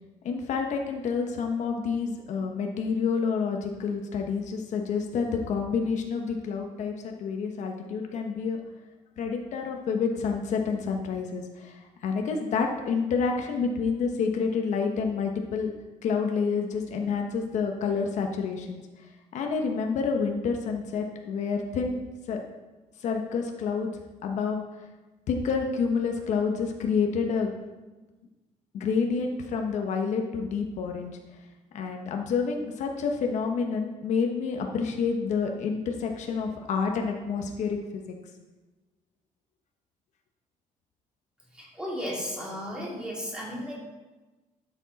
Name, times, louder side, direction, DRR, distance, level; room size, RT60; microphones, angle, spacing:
voice 1, 0.2-8.6 9.2-15.7 16.0-18.8 19.3-22.0 22.3-22.4 23.0-23.9 24.2-24.6 25.3-27.5 28.7-31.1 31.7-38.0, left 5 dB, 65° left, 3 dB, 1.1 m, -28 dB
voice 2, 41.5-43.7, equal, 5° right, -5 dB, 2.8 m, -34 dB
12.5 x 7.3 x 4.1 m, 1.2 s
cardioid pair, 175°, 13 cm